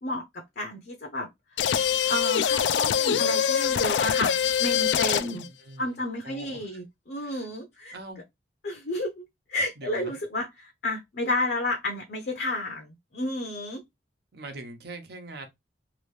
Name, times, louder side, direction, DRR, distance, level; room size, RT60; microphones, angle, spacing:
voice 1, 0.0-1.3 2.1-5.5 5.8-8.0 8.6-9.2 9.5-13.8, left 2 dB, 60° left, 0.7 m, -31 dB
sound 1, 1.6-5.5, left 8 dB, 85° left, 0.3 m, -24 dB
voice 2, 5.3-6.8 7.2-7.5 7.9-8.2 9.8-10.2 14.3-15.5, right 2 dB, 65° right, 0.9 m, -43 dB
2.9 x 2.6 x 3.2 m
head